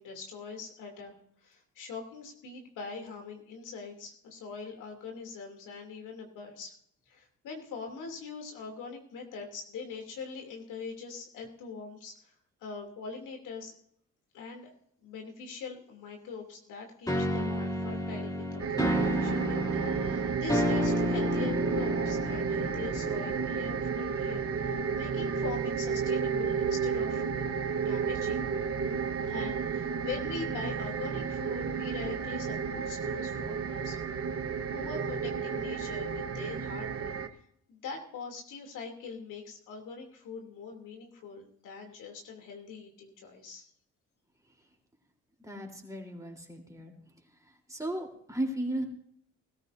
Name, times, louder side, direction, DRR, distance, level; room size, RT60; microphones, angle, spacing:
voice 1, 0.0-6.7 7.1-12.3 12.6-13.7 14.3-14.7 15.0-27.5 27.8-28.5 29.3-34.0 34.7-37.1 37.7-43.7, left 5 dB, 85° left, 2 dB, 3.1 m, -42 dB
sound 1, 17.1-23.9, equal, 10° left, 3.2 m, -31 dB
sound 2, 18.6-37.3, right 6 dB, 50° right, 1.3 m, -32 dB
voice 2, 45.4-46.9 47.7-48.8, right 1 dB, 10° right, 0 dB, 3.8 m, -35 dB
20.0 x 13.5 x 2.7 m, 0.69 s
cardioid pair, 90°, 30 cm